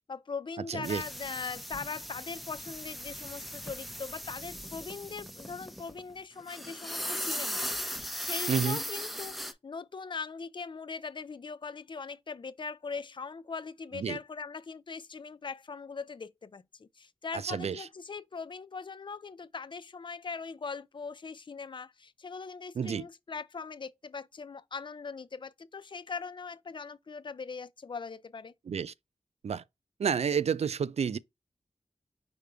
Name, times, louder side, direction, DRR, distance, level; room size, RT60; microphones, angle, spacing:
voice 1, 0.0-7.6 8.0-28.5, left 5 dB, 45° left, 0.5 m, -41 dB
voice 2, 0.7-1.0 8.5-8.8 13.9-14.2 17.3-17.9 22.8-23.1 28.7-28.9 29.4-29.6 30.0-31.2, right 7 dB, 70° right, 0.4 m, -30 dB
sound 1, 0.8-6.1 6.4-9.5, equal, ahead, 0.7 m, -38 dB
5.1 x 2.2 x 4.7 m
cardioid pair, 60°, 11 cm